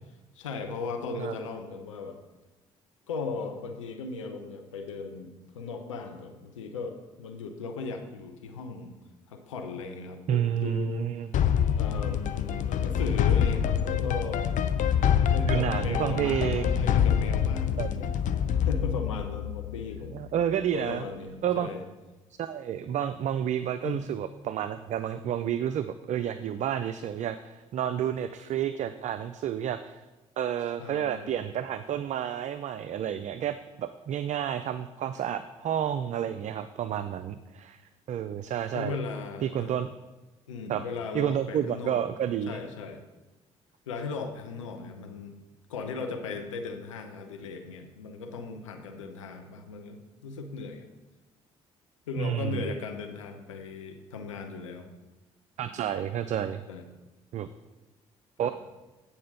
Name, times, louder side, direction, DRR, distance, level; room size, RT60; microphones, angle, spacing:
voice 1, 0.4-2.2 3.1-8.9 9.3-11.1 11.8-14.5 15.2-18.1 18.5-20.2 20.7-21.8 23.8-24.0 30.8-31.4 38.7-39.7 40.5-42.1 42.5-43.0 43.9-45.3 45.7-50.9 52.1-54.9 55.7-55.8 56.7-56.8 58.4-58.5, left 4 dB, 90° left, 5 dB, 0.7 m, -37 dB
voice 2, 10.3-11.3 15.5-16.9 17.8-17.9 20.1-21.0 21.4-21.7 22.4-30.0 30.4-37.8 38.1-39.0 39.4-39.9 40.7-40.8 41.1-42.6 52.2-52.6 55.6-56.6 57.3-57.5 58.4-58.5, right 9 dB, 50° right, 11 dB, 0.4 m, -30 dB
sound 1, 11.3-20.2, left 8 dB, 55° left, 0.6 m, -26 dB
8.6 x 4.3 x 6.6 m, 1.1 s
hypercardioid pair, 50°, 16 cm